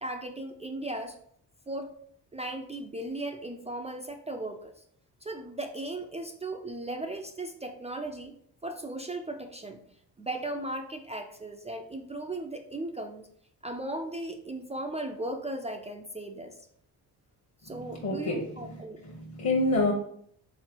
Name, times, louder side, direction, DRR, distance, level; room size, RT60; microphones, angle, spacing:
voice 1, 0.0-1.2 1.7-1.9 2.3-4.7 5.2-8.3 8.6-9.8 10.2-13.3 13.6-16.6 17.6-19.0, right 1 dB, 20° right, 4 dB, 0.3 m, -37 dB
voice 2, 17.7-19.9, left 2 dB, 40° left, -1 dB, 1.1 m, -29 dB
3.6 x 3.0 x 4.4 m, 0.65 s
cardioid pair, 85°, 39 cm